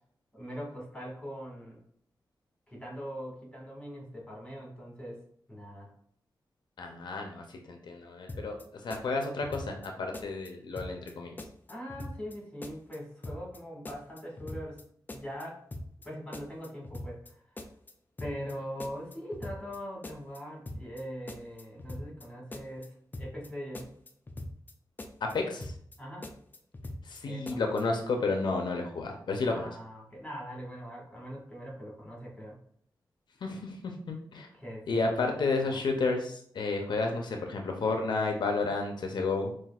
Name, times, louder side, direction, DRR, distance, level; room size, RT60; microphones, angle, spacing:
voice 1, 0.3-1.8 2.7-5.2 5.5-5.9 11.7-15.7 16.0-17.4 18.2-23.9 26.0-26.3 27.2-27.6 29.5-32.6 34.5-35.1 35.5-35.8, equal, 10° left, -3 dB, 1.6 m, -42 dB
voice 2, 6.8-8.6 8.8-11.3 25.3-25.7 27.1-29.7 33.4-34.5 34.9-39.5, left 3 dB, 75° left, 3 dB, 0.5 m, -31 dB
sound 1, 8.3-8.6 8.9-9.9 10.1-10.5 10.8-11.1 11.4-12.4 12.6-13.0 13.2-13.6 13.8-14.8 15.1-15.4 15.7-16.1 16.3-17.3 17.6-17.9 18.2-18.5 18.8-19.8 20.0-20.4 20.7-21.0 21.3-22.2 22.5-22.9 23.1-23.5 23.7-24.7 25.0-25.3 25.6-26.0 26.2-27.2 27.5-27.8, left 1 dB, 25° left, 0.4 m, -42 dB
5.7 x 2.5 x 2.4 m, 0.63 s
wide cardioid pair, 100°, 8 cm